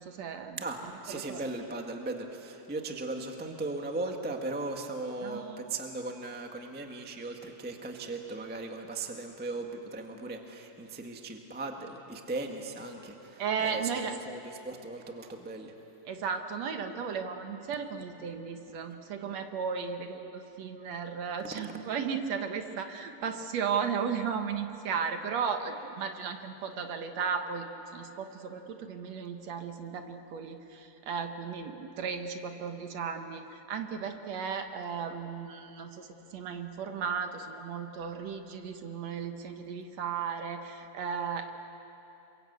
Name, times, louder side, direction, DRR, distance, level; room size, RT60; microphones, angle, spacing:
voice 1, 0.0-0.6 1.1-1.4 5.2-5.6 13.4-14.2 16.1-27.7 27.9-41.5, right 6 dB, 65° right, 6 dB, 2.3 m, -35 dB
voice 2, 0.6-15.7 21.4-21.8, right 2 dB, 5° right, 3 dB, 0.7 m, -38 dB
28.0 x 23.5 x 8.2 m, 2.9 s
omnidirectional pair, 3.5 m